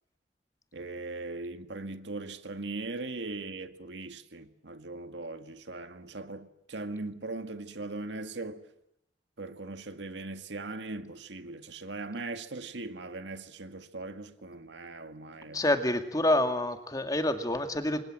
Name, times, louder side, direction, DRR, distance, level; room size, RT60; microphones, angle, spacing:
voice 1, 0.7-8.6 9.4-15.6, right 2 dB, 85° right, 1.9 m, -39 dB
voice 2, 15.5-18.0, left 1 dB, 20° left, 2.2 m, -27 dB
30.0 x 25.0 x 7.6 m
head